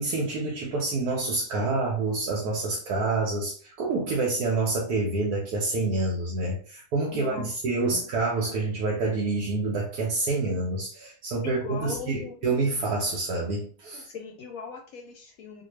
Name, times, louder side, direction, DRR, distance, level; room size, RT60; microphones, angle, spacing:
voice 1, 0.0-7.4 7.6-14.1, right 3 dB, 90° right, -2 dB, 1.3 m, -27 dB
voice 2, 7.1-7.5 7.8-8.0 11.4-12.4 14.1-15.6, left 5 dB, 75° left, 2 dB, 1.0 m, -39 dB
3.9 x 2.2 x 3.1 m, 0.42 s
omnidirectional pair, 1.6 m